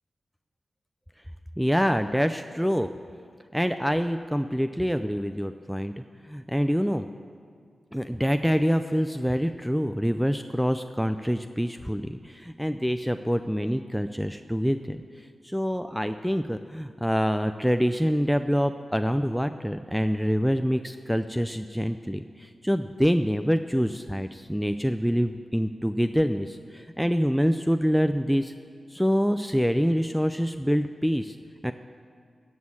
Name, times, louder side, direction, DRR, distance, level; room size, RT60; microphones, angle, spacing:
voice 1, 1.6-2.9 3.5-7.1 7.9-28.5 28.9-31.4 31.6-31.7, equal, ahead, 9 dB, 0.4 m, -26 dB
16.5 x 6.3 x 8.8 m, 2.1 s
wide cardioid pair, 85°, 0 cm